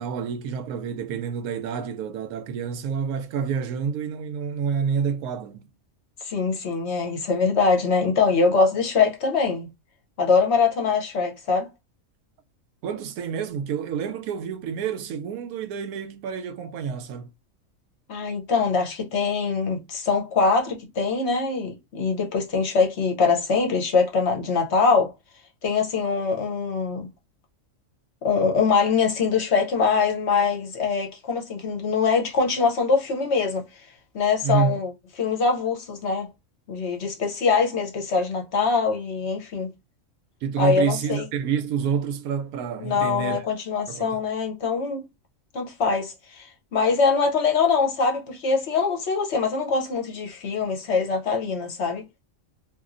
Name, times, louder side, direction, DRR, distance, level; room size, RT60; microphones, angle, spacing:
voice 1, 0.0-5.6 12.8-17.3 34.4-34.8 40.4-43.4 43.9-44.2, right 7 dB, 85° right, 1.0 m, -28 dB
voice 2, 6.2-9.7 10.2-11.7 18.1-25.1 25.6-27.1 28.2-33.6 34.1-34.9 35.2-36.3 36.7-39.7 40.6-41.3 42.8-45.0 45.5-52.0, left 5 dB, 60° left, 0.9 m, -23 dB
2.9 x 2.5 x 2.5 m
omnidirectional pair, 1.5 m